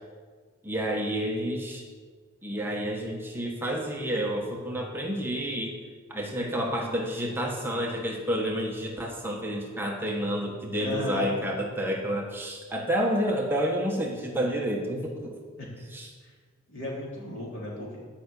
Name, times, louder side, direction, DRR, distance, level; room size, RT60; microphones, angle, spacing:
voice 1, 0.6-1.8 2.4-5.7 6.1-15.4 15.9-16.1, equal, 10° right, -1 dB, 1.2 m, -29 dB
voice 2, 10.8-11.3 15.6-15.7 16.7-18.0, left 1 dB, 60° left, -5 dB, 3.9 m, -34 dB
11.0 x 5.8 x 8.2 m, 1.5 s
head